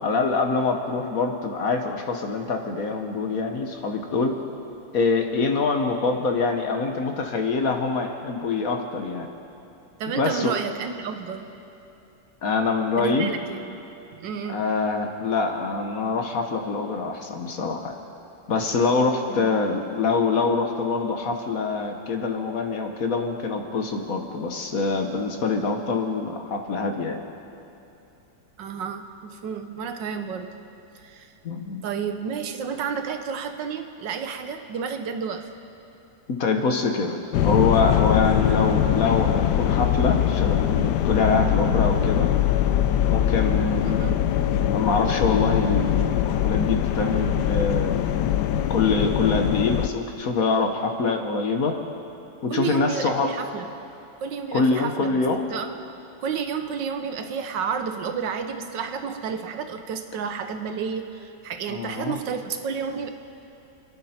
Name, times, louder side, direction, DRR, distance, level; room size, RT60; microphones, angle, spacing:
voice 1, 0.0-4.4 4.9-9.3 10.1-10.5 12.4-13.3 14.5-18.0 18.5-27.2 31.4-31.8 36.3-42.3 43.1-44.2 44.5-48.0 48.7-51.8 52.4-53.3 54.5-55.5 61.7-62.2, left 4 dB, 55° left, 4 dB, 1.4 m, -25 dB
voice 2, 10.0-11.6 13.0-13.8 14.1-14.7 19.3-19.5 28.6-30.5 30.9-31.3 31.8-35.5 43.8-44.2 52.5-53.7 54.2-55.2 55.5-55.7 56.2-63.1, right 6 dB, 80° right, 7 dB, 1.6 m, -31 dB
sound 1, 37.3-49.9, left 11 dB, 70° left, 1.1 m, -22 dB
27.5 x 11.0 x 4.3 m, 2.9 s
omnidirectional pair, 2.0 m